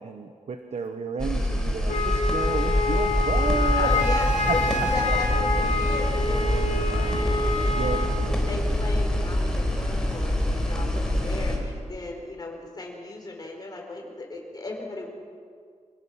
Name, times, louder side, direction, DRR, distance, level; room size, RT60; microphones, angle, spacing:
voice 1, 0.0-3.9 4.5-4.6 7.7-8.0, right 5 dB, 60° right, 7 dB, 1.2 m, -31 dB
sound 1, 1.2-11.6, left 1 dB, 5° left, 4.4 m, -25 dB
Wind instrument woodwind instrument, 1.9-8.2, left 3 dB, 70° left, 2.6 m, -27 dB
voice 2, 3.8-8.0 8.3-15.1, left 2 dB, 30° left, 0 dB, 5.0 m, -36 dB
26.5 x 18.0 x 6.4 m, 2.1 s
wide cardioid pair, 120°, 13 cm